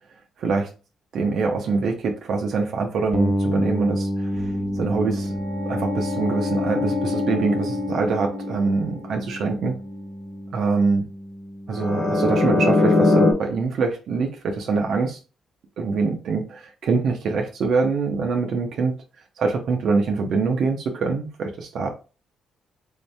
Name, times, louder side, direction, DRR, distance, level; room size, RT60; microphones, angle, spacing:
voice 1, 0.4-0.7 1.1-5.3 5.7-9.8 10.5-11.1 11.7-15.2 15.8-18.9 19.4-21.9, right 4 dB, 65° right, 0.7 m, -24 dB
sound 1, 3.1-12.8, equal, 5° left, 0.5 m, -30 dB
sound 2, 4.4-9.2 11.7-13.3, left 3 dB, 70° left, 1.3 m, -23 dB
3.6 x 2.7 x 3.3 m
cardioid pair, 90°, 0 cm